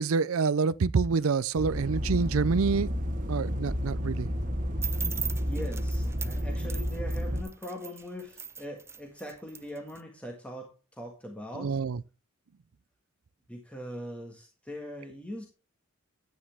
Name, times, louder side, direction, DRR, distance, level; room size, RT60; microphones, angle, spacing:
voice 1, 0.0-2.9 3.3-4.3 11.5-12.0, right 5 dB, 75° right, 0.5 m, -27 dB
sound 1, 1.6-7.4, equal, 40° right, 1.4 m, -31 dB
sound 2, 4.8-10.0, right 6 dB, 10° right, 0.4 m, -39 dB
voice 2, 5.3-11.8 13.5-15.5, equal, 5° left, 1.6 m, -41 dB
11.0 x 9.4 x 3.5 m
head